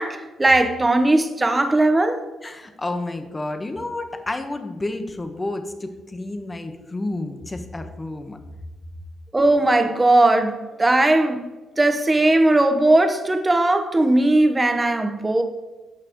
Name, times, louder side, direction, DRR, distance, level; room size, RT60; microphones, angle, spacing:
voice 1, 0.0-2.2 9.3-11.5 11.8-15.4, right 2 dB, 15° right, 1.2 m, -18 dB
voice 2, 2.4-8.4, left 2 dB, 20° left, 1.2 m, -30 dB
15.5 x 5.8 x 3.1 m
cardioid pair, 90°, 0 cm